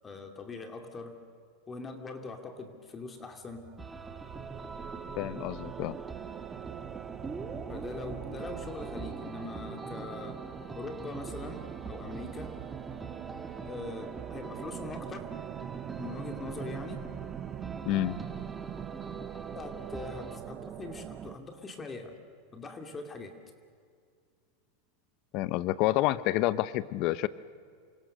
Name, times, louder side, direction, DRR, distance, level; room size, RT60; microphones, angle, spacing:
voice 1, 0.0-1.2 1.7-3.6 7.7-10.4 10.7-12.6 13.6-15.3 16.0-17.1 19.5-22.2 22.5-23.4, left 3 dB, 20° left, 5 dB, 2.4 m, -42 dB
sound 1, 3.3-21.3, right 10 dB, 35° right, 0.9 m, -43 dB
sound 2, 3.8-20.4, right 3 dB, 10° right, 2.1 m, -44 dB
voice 2, 5.2-6.0 17.9-18.2 25.3-27.3, left 16 dB, 50° left, 16 dB, 0.8 m, -28 dB
28.5 x 24.5 x 6.6 m, 2.1 s
supercardioid pair, 130°, 0 cm